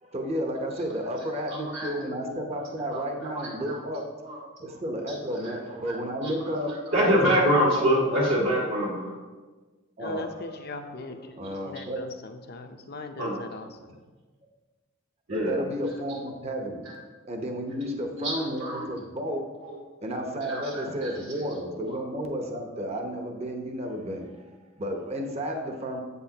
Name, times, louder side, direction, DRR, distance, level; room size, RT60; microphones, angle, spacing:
voice 1, 0.0-4.0 4.6-6.7 7.0-7.9 8.1-8.2 10.0-10.5 11.3-12.0 15.3-16.9 17.3-19.4 20.0-24.3 24.8-26.0, equal, 30° right, 3 dB, 0.9 m, -32 dB
voice 2, 1.2-1.9 2.2-2.6 2.9-4.4 5.1-5.9 6.2-9.1 13.2-13.4 15.3-15.6 16.1-16.2 16.8-16.9 17.8-19.0 19.6-19.8 20.4-22.0, equal, 70° right, -5 dB, 2.1 m, -28 dB
voice 3, 10.0-11.4 11.6-14.0, left 2 dB, 50° left, 6 dB, 0.7 m, -39 dB
8.5 x 8.2 x 2.9 m, 1.3 s
head